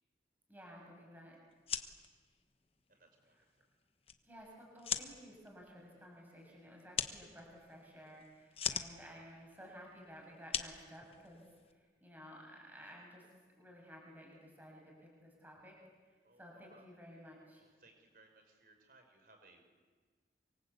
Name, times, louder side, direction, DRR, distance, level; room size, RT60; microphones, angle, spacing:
voice 1, 0.5-1.4 4.2-13.2 13.6-15.7 16.1-17.6, equal, 10° right, -2 dB, 7.2 m, -55 dB
sound 1, 1.5-11.7, left 8 dB, 35° left, 1.2 m, -43 dB
voice 2, 2.9-3.7 16.2-16.4 16.7-16.8 17.6-19.9, right 2 dB, 55° right, 5 dB, 5.7 m, -65 dB
27.5 x 25.5 x 8.3 m, 1.5 s
head